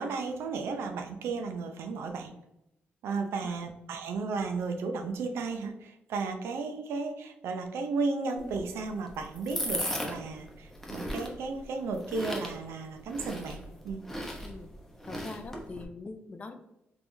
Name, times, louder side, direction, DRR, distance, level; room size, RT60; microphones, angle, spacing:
voice 1, 0.0-2.3 3.0-14.0, right 4 dB, 90° right, 5 dB, 0.5 m, -34 dB
voice 2, 3.2-3.5 14.4-14.7 15.1-16.5, left 3 dB, 35° left, 7 dB, 0.4 m, -43 dB
sound 1, 8.4-15.8, equal, 10° left, 0.8 m, -38 dB
3.4 x 3.3 x 2.6 m, 0.89 s
cardioid pair, 85°, 4 cm